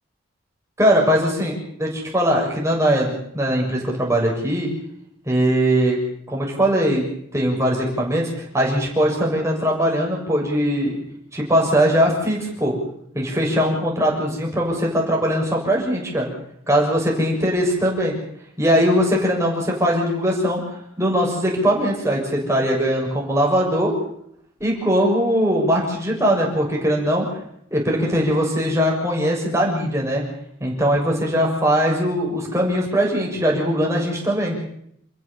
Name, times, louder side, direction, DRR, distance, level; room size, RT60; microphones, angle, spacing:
voice 1, 0.8-4.7 5.3-6.0 6.3-7.0 7.3-10.9 11.3-12.7 13.1-16.3 16.7-18.1 18.6-20.6 21.0-23.9 24.6-27.2 27.7-30.2 30.6-34.6, equal, 15° right, -1 dB, 6.8 m, -20 dB
29.0 x 15.0 x 7.4 m, 0.71 s
head